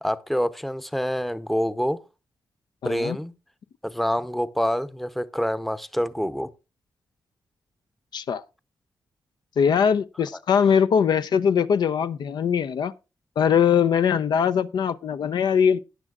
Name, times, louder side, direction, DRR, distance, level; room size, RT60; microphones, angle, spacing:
voice 1, 0.0-2.0 2.8-3.3 3.8-6.5, equal, ahead, 0.7 m, -26 dB
voice 2, 2.8-3.2 8.1-8.4 9.6-12.9 13.4-15.8, left 7 dB, 75° left, 0.5 m, -21 dB
17.0 x 10.0 x 2.4 m
cardioid pair, 85°, 7 cm